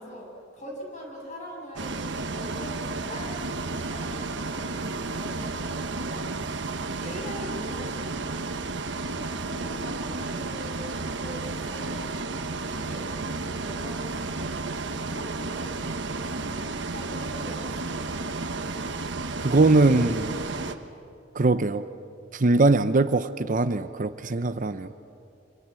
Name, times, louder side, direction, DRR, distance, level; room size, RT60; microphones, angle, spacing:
voice 1, 0.0-2.0 2.3-6.3 7.0-8.2 9.0-12.1 12.6-14.6 15.0-18.0, equal, 40° left, 0 dB, 7.5 m, -42 dB
Bus, 1.8-20.8, right 3 dB, 70° right, 1.3 m, -32 dB
voice 2, 19.4-20.3 21.3-21.9 22.3-24.9, right 2 dB, 45° right, 12 dB, 0.7 m, -21 dB
27.0 x 26.0 x 7.7 m, 2.7 s
head